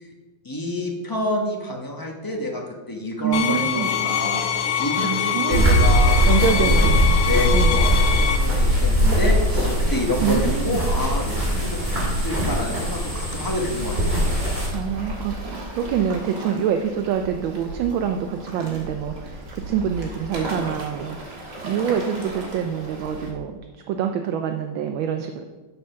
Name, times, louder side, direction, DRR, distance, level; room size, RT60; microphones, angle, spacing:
voice 1, 0.4-3.7 3.9-4.4 4.8-6.9 7.2-14.2, left 1 dB, 20° left, 0 dB, 0.5 m, -28 dB
voice 2, 3.2-3.9 5.0-5.7 6.2-7.2 7.5-7.8 10.2-10.8 14.7-21.3 21.6-23.6 23.9-25.4, right 8 dB, 75° right, 6 dB, 1.3 m, -25 dB
sound 1, 3.3-8.4, left 9 dB, 85° left, 1.7 m, -24 dB
sound 2, 5.5-14.7, equal, 25° right, 3.0 m, -20 dB
Waves surf, 13.6-23.3, right 1 dB, 55° right, 2.2 m, -35 dB
7.3 x 6.6 x 5.7 m, 1.3 s
omnidirectional pair, 2.3 m